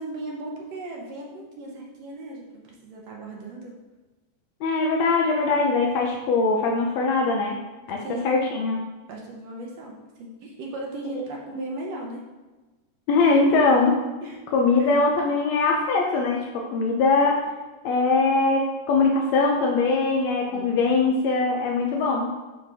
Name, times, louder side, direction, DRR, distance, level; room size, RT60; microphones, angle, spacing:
voice 1, 0.0-3.7 8.0-8.4 9.1-12.2 14.2-14.4 14.8-15.0 20.5-20.9, right 2 dB, 65° right, -1 dB, 1.7 m, -37 dB
voice 2, 4.6-7.6 7.9-8.8 13.1-14.0 14.5-17.4 17.8-22.3, left 3 dB, 85° left, 0 dB, 1.5 m, -21 dB
10.0 x 4.1 x 3.5 m, 1.2 s
omnidirectional pair, 3.9 m